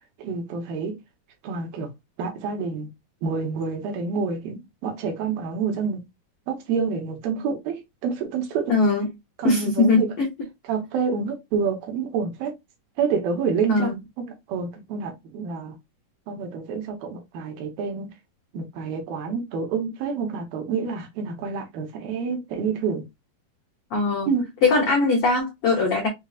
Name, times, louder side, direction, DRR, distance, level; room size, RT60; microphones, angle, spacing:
voice 1, 0.2-0.9 1.4-1.9 2.2-2.9 3.2-6.0 6.5-8.7 9.4-10.1 10.7-12.6 13.0-15.7 16.3-18.1 18.5-23.1 24.3-24.5, right 5 dB, 70° right, 2.7 m, -28 dB
voice 2, 8.7-9.1 9.4-10.3 13.7-13.9 23.9-24.3 24.6-26.1, left 3 dB, 90° left, 1.2 m, -20 dB
6.7 x 2.3 x 2.4 m
omnidirectional pair, 4.4 m